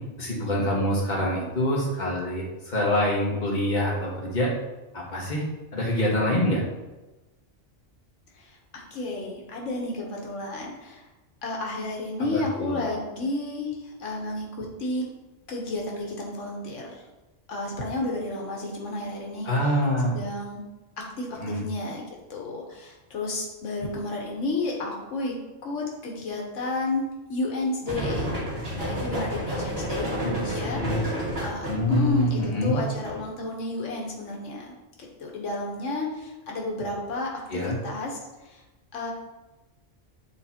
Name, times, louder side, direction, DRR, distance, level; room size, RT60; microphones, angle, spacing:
voice 1, 0.2-4.5 4.9-5.4 5.7-6.6 12.3-12.9 19.4-20.1 21.4-21.6 30.2-31.0 31.7-32.8 37.5-37.8, left 1 dB, 40° left, -4 dB, 1.5 m, -25 dB
voice 2, 8.3-11.1 11.4-15.1 15.5-17.0 17.5-19.7 20.0-20.6 21.0-25.4 25.6-28.3 28.7-31.1 31.4-34.7 35.2-37.3 37.6-38.6 38.9-39.1, left 2 dB, 85° left, -1 dB, 1.4 m, -32 dB
sound 1, 27.9-33.2, equal, 55° right, 2.1 m, -31 dB
8.3 x 4.2 x 2.8 m, 1.1 s
omnidirectional pair, 1.2 m